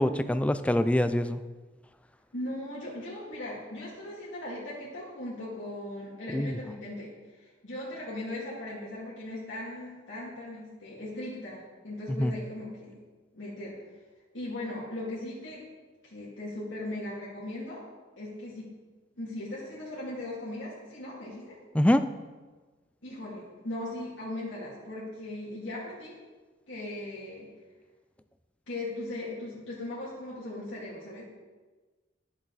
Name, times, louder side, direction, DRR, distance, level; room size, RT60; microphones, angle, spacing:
voice 1, 0.0-1.4 6.3-6.6 12.2-12.3 21.7-22.0, left 1 dB, 5° left, 11 dB, 0.3 m, -24 dB
voice 2, 2.3-7.1 7.4-13.0 13.3-13.8 14.3-15.6 16.0-17.8 18.2-18.7 19.2-21.6 23.0-26.2 26.7-27.5 28.7-31.2, left 1 dB, 80° left, -7 dB, 2.4 m, -38 dB
10.5 x 7.3 x 4.0 m, 1.3 s
head